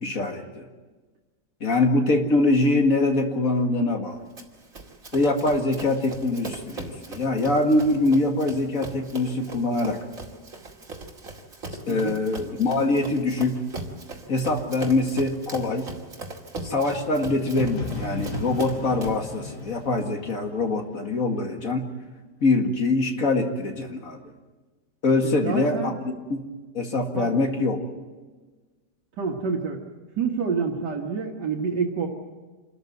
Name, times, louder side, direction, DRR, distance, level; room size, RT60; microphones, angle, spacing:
voice 1, 0.0-0.6 1.6-4.2 5.1-10.0 11.9-13.5 14.3-15.9 16.6-21.8 22.4-24.2 25.0-26.4 26.7-27.8, left 2 dB, 55° left, 4 dB, 2.4 m, -24 dB
Run, 4.4-19.3, right 2 dB, 50° right, 2.9 m, -39 dB
sound 1, 17.6-21.4, left 2 dB, 80° left, 3.3 m, -35 dB
voice 2, 25.2-26.0 27.1-27.3 29.2-29.8 30.2-32.1, right 5 dB, 80° right, 0 dB, 2.2 m, -27 dB
27.0 x 13.5 x 9.5 m, 1.3 s
omnidirectional pair, 1.8 m